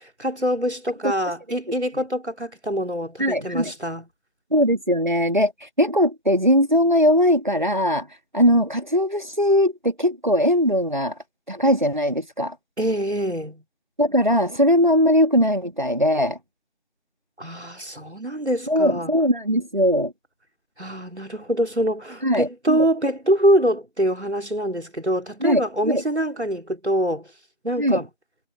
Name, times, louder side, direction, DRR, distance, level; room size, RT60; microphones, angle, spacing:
voice 1, 0.2-4.1 12.8-13.6 17.4-19.1 20.8-27.3 27.6-28.1, equal, 75° right, 3.7 m, -24 dB
voice 2, 3.2-3.7 4.5-8.1 8.3-11.1 11.5-12.6 14.0-16.4 18.7-20.1 22.2-22.9 25.4-26.0 27.8-28.0, equal, 45° right, 2.1 m, -20 dB
figure-of-eight pair, 180°, 34 cm